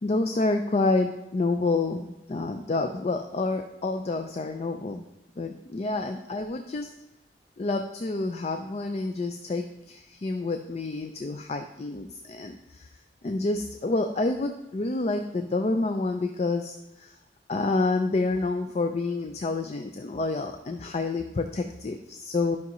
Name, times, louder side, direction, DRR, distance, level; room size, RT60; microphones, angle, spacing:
voice 1, 0.0-5.0 5.4-6.9 7.6-12.9 13.2-17.2 17.5-22.6, left 3 dB, 35° left, 6 dB, 0.4 m, -28 dB
12.0 x 5.8 x 3.0 m, 0.93 s
head